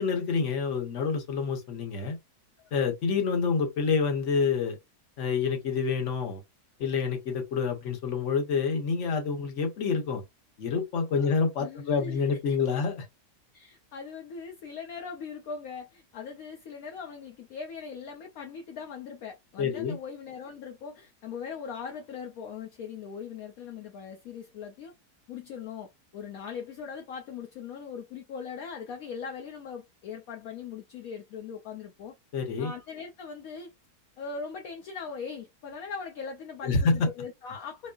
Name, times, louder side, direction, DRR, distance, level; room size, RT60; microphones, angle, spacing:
voice 1, 0.0-2.2 2.7-4.8 5.2-6.4 6.8-10.2 10.6-13.1 19.6-20.0 32.3-32.7 36.6-37.1, left 5 dB, 50° left, 1.2 m, -27 dB
voice 2, 11.6-12.2 13.5-24.9 25.3-32.1 32.6-33.7 34.2-37.9, left 6 dB, 65° left, 1.1 m, -40 dB
5.3 x 2.0 x 2.3 m
omnidirectional pair, 1.7 m